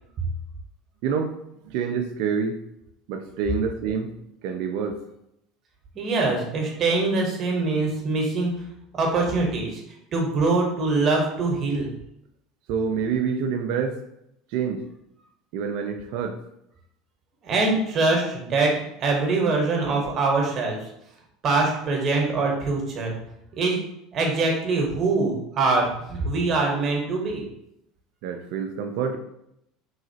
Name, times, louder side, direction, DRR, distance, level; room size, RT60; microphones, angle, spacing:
voice 1, 1.0-1.3 1.6-2.6 3.1-4.2 4.4-5.0 12.7-14.0 14.5-14.8 15.5-16.4 28.2-29.2, right 6 dB, 60° right, 5 dB, 0.4 m, -27 dB
voice 2, 5.9-8.5 8.9-9.8 10.1-11.9 17.4-20.8 21.4-23.1 23.5-23.8 24.1-27.5, right 3 dB, 45° right, 0 dB, 1.0 m, -23 dB
3.1 x 2.8 x 2.7 m, 0.78 s
hypercardioid pair, 70°, 0 cm